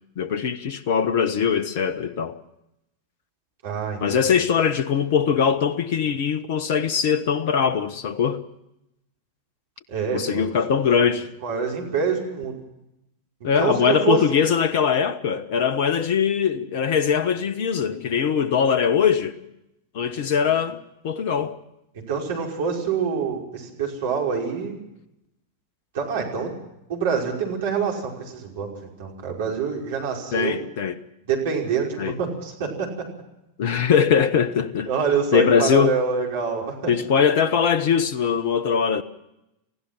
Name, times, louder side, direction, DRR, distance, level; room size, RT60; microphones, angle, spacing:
voice 1, 0.2-2.4 4.0-8.4 10.1-11.3 13.4-19.4 19.9-21.6 30.3-31.0 32.0-32.1 33.6-34.9 35.3-36.0 36.9-39.0, left 7 dB, 50° left, 1.2 m, -21 dB
voice 2, 3.6-4.3 9.9-10.5 11.4-12.5 13.6-14.2 22.1-24.7 25.9-26.5 26.9-28.7 29.0-30.6 31.3-33.1 34.9-36.9, right 6 dB, 55° right, 5.3 m, -26 dB
29.5 x 16.0 x 5.9 m
figure-of-eight pair, 90°, 0 cm